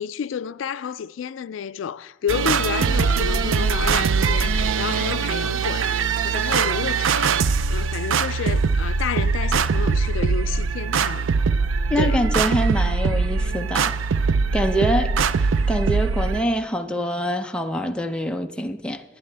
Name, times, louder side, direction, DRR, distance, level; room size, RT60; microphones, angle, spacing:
voice 1, 0.0-11.3 12.0-12.2, left 7 dB, 80° left, 0.4 m, -30 dB
sound 1, 2.3-16.4, right 5 dB, 90° right, 0.4 m, -22 dB
voice 2, 11.9-13.9 14.5-15.1 15.4-19.0, equal, 5° left, 0.6 m, -25 dB
20.5 x 11.0 x 3.4 m
head